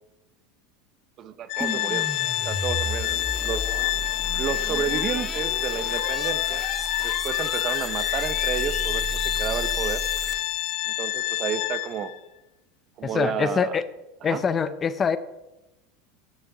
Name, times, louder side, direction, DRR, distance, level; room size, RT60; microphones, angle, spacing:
voice 1, 1.2-2.1 2.4-3.8 4.4-6.6 7.0-10.0 10.9-12.1 13.0-13.8 14.2-14.4, right 8 dB, 40° right, 13 dB, 0.8 m, -31 dB
Organ, 1.5-12.1, left 16 dB, 60° left, 0.9 m, -27 dB
sound 1, 1.6-10.7, right 1 dB, ahead, 1.0 m, -34 dB
voice 2, 13.1-13.8 14.2-15.2, left 6 dB, 25° left, 13 dB, 0.6 m, -24 dB
10.5 x 7.0 x 6.0 m, 0.98 s
supercardioid pair, 130°, 0 cm